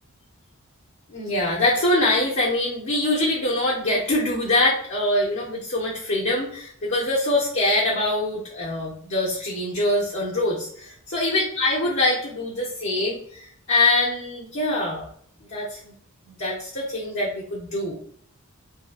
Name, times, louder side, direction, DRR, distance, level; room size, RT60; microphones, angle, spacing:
voice 1, 1.1-15.1 15.5-15.9 16.3-17.9, left 1 dB, 55° left, -5 dB, 0.7 m, -24 dB
2.7 x 2.7 x 2.3 m, 0.63 s
head